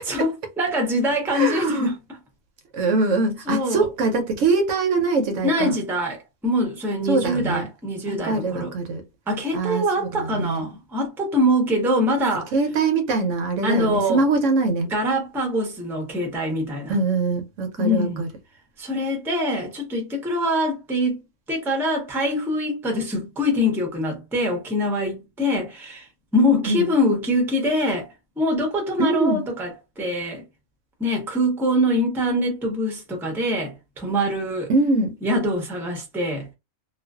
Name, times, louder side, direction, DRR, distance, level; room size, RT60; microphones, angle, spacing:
voice 1, 0.1-1.9 3.5-3.9 5.4-8.7 9.3-12.5 13.6-14.2 14.9-17.0 17.8-18.2 18.8-21.2 21.5-26.1 26.3-28.1 28.4-30.4 31.0-34.7 35.2-36.5, left 1 dB, ahead, 0.5 m, -24 dB
voice 2, 1.3-1.9 2.7-5.7 7.1-7.7 8.1-9.0 9.5-10.6 12.5-14.9 16.9-18.3 26.6-26.9 29.0-29.4 34.7-35.2, right 3 dB, 70° right, 0.9 m, -23 dB
2.4 x 2.3 x 2.2 m
omnidirectional pair, 1.4 m